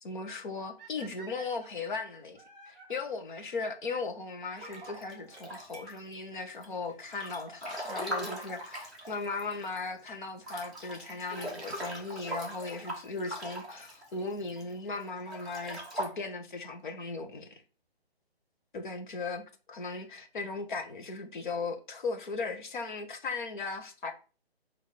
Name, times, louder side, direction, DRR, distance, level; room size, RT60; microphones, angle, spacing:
voice 1, 0.0-17.6 18.7-19.4 19.7-24.1, left 3 dB, 50° left, 1.3 m, -37 dB
sound 1, 0.8-3.0 4.5-5.5 6.5-6.6 7.3-7.4 7.5-7.6 9.5-9.8 12.6-12.7 13.7-13.8 15.3-15.4 15.7-15.8 16.0-16.1 16.3-16.4 16.5-16.6 16.8-16.9 17.1-17.2, right 4 dB, 15° right, 1.9 m, -54 dB
Breathing / Bathtub (filling or washing) / Splash splatter, 4.6-6.1 6.6-9.8 10.1-10.2 10.4-14.6 15.2-16.1, right 1 dB, ahead, 0.7 m, -40 dB
6.5 x 3.0 x 5.0 m
figure-of-eight pair, 145°, 32 cm